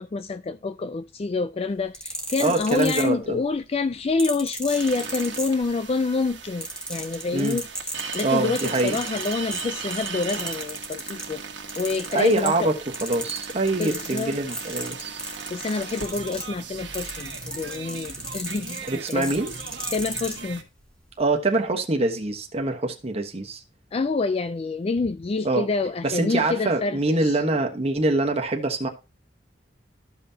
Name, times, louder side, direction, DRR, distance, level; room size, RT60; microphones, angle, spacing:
voice 1, 0.0-11.5 11.8-12.7 13.7-14.4 15.5-19.3 19.9-20.6 23.9-27.4, left 3 dB, 35° left, 0.4 m, -27 dB
sound 1, 1.8-3.5 4.2-5.9 6.3-11.3 11.7-12.7 12.9-20.4 21.1-21.3, equal, 5° left, 1.6 m, -34 dB
voice 2, 2.4-3.4 7.3-7.6 8.2-9.0 12.1-15.2 18.8-19.5 21.2-23.6 25.4-25.7 26.0-28.9, right 2 dB, 35° right, 1.2 m, -24 dB
sound 2, 4.7-20.6, right 5 dB, 75° right, 1.6 m, -38 dB
13.5 x 5.6 x 2.8 m
head